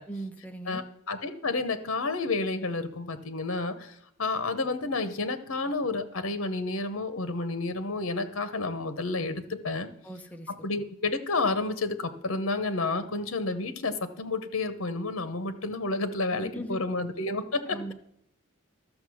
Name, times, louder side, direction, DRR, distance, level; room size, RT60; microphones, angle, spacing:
voice 1, 0.1-0.8 10.0-10.7 16.3-16.8 17.7-17.9, right 1 dB, 5° left, 5 dB, 0.7 m, -39 dB
voice 2, 0.7-9.9 10.5-17.9, left 3 dB, 65° left, 10 dB, 0.9 m, -30 dB
12.5 x 6.5 x 6.3 m, 0.75 s
head